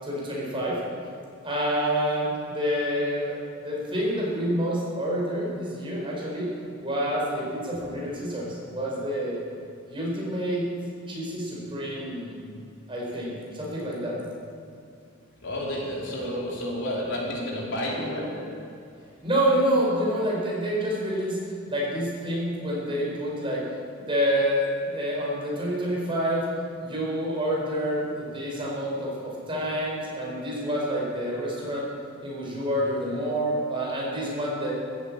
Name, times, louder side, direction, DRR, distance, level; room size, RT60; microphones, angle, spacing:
voice 1, 0.0-0.8 1.4-3.4 3.6-6.5 6.8-9.4 9.9-10.7 11.1-12.3 12.9-14.2 19.2-21.4 21.7-23.6 24.0-26.5 26.8-31.9 32.2-34.7, equal, 25° right, -4 dB, 5.0 m, -28 dB
voice 2, 15.4-18.7, left 1 dB, 65° left, -4 dB, 4.1 m, -31 dB
14.5 x 10.0 x 8.8 m, 2.5 s
head